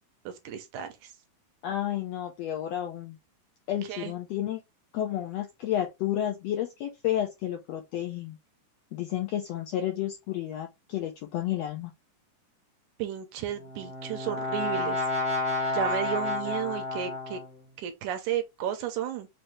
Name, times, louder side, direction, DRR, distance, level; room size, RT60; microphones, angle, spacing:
voice 1, 0.3-0.9 3.9-4.1 13.0-15.0 15.7-17.4 17.8-19.3, right 9 dB, 75° right, 2.2 m, -33 dB
voice 2, 1.6-3.2 3.7-4.6 4.9-8.4 8.9-11.9, left 11 dB, 80° left, 1.5 m, -31 dB
Brass instrument, 13.4-17.6, left 2 dB, 55° right, 0.6 m, -31 dB
5.5 x 2.7 x 3.2 m
omnidirectional pair, 3.7 m